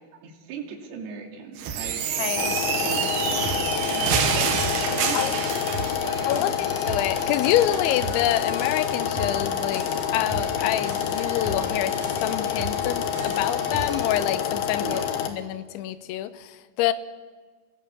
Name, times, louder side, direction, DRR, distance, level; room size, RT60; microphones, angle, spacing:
voice 1, 0.2-2.1 2.8-4.4 4.8-6.5 14.8-15.1, right 6 dB, 65° right, 0 dB, 4.5 m, -38 dB
sound 1, 1.6-6.0, right 7 dB, 80° right, 3.9 m, -27 dB
voice 2, 2.2-2.6 5.1-5.3 6.3-9.9 10.1-15.0 15.3-16.9, left 13 dB, 85° left, 13 dB, 3.2 m, -27 dB
sound 2, 2.4-15.3, left 9 dB, 70° left, 3.1 m, -28 dB
sound 3, 2.7-14.3, right 2 dB, 40° right, 7.0 m, -36 dB
30.0 x 17.0 x 7.0 m, 1.4 s
omnidirectional pair, 5.2 m